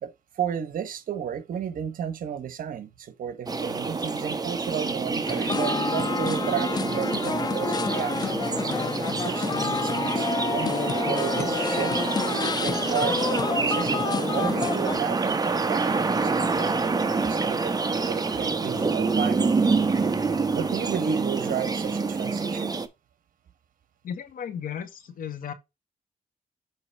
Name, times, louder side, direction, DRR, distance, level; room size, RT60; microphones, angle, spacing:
voice 1, 0.0-8.4 9.2-19.5 20.5-22.7, right 8 dB, 75° right, 1.1 m, -33 dB
sound 1, 3.5-22.9, right 4 dB, 25° right, 1.0 m, -27 dB
sound 2, 5.3-15.0, left 5 dB, 30° left, 0.3 m, -29 dB
voice 2, 24.0-25.5, left 8 dB, 75° left, 1.5 m, -35 dB
7.9 x 3.0 x 5.7 m
cardioid pair, 85°, 14 cm